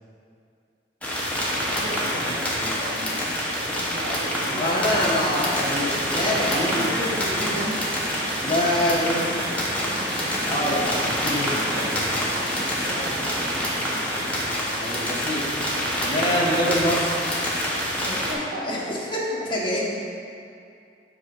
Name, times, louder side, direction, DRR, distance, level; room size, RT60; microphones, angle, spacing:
sound 1, 1.0-18.3, equal, 10° left, 1.2 m, -27 dB
voice 1, 1.6-5.0 5.3-5.5 6.5-7.8 10.5-10.6 10.9-11.0 12.7-13.7 16.5-16.8 18.0-19.0, equal, 90° right, -5 dB, 1.7 m, -35 dB
voice 2, 4.5-6.9 8.4-9.8 10.5-12.0 14.7-15.4 16.0-17.1 18.6-18.8 19.1-19.2 19.5-19.9, equal, 30° left, -6 dB, 1.5 m, -25 dB
sound 2, 4.9-14.5, right 1 dB, 15° right, 0.5 m, -35 dB
7.7 x 3.7 x 6.2 m, 2.5 s
head